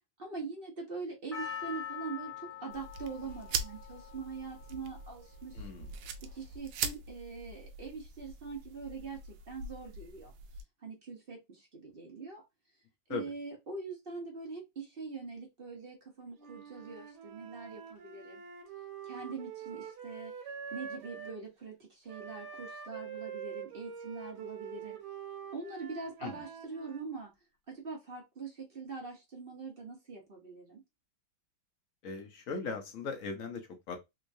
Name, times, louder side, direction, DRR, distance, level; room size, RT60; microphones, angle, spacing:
voice 1, 0.2-5.7 6.3-10.3 10.8-12.4 13.1-18.4 19.0-20.3 20.7-25.0 25.5-27.3 27.7-30.8, right 4 dB, 40° right, 0.9 m, -43 dB
Percussion, 1.3-5.7 6.3-6.4, left 8 dB, 85° left, 0.4 m, -44 dB
sound 1, 2.7-10.6, right 5 dB, 90° right, 1.4 m, -42 dB
voice 2, 5.5-5.9 13.1-13.2 26.2-26.3 32.0-34.0, left 4 dB, 60° left, 0.8 m, -38 dB
Wind instrument woodwind instrument, 16.4-21.4 22.1-27.1, right 7 dB, 65° right, 1.6 m, -45 dB
3.6 x 3.2 x 2.6 m
omnidirectional pair, 2.1 m